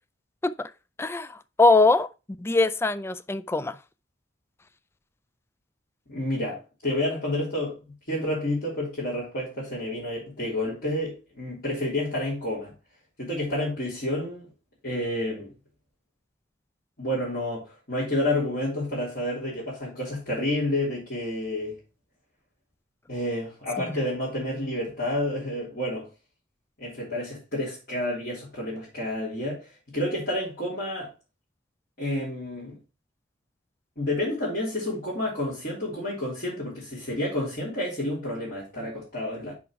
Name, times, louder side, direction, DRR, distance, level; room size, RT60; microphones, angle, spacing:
voice 1, 1.0-2.1 2.4-3.8, left 3 dB, 15° left, 0.3 m, -22 dB
voice 2, 6.1-12.7 13.2-14.5 14.8-15.5 17.0-21.8 23.1-26.1 26.8-31.1 32.0-32.8 34.0-39.5, left 1 dB, 50° left, 3.5 m, -30 dB
6.1 x 5.8 x 4.6 m
head